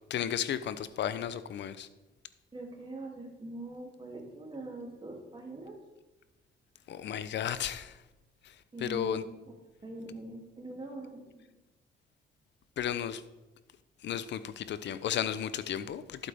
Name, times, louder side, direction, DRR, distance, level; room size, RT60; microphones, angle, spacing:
voice 1, 0.1-1.9 6.9-8.0 8.4-9.2 12.8-13.2 14.0-16.3, left 9 dB, 65° left, 14 dB, 0.7 m, -34 dB
voice 2, 2.5-5.7 8.7-9.3 9.8-11.5, right 2 dB, 25° right, -1 dB, 2.8 m, -43 dB
11.5 x 8.3 x 3.6 m, 1.1 s
cardioid pair, 90°, 20 cm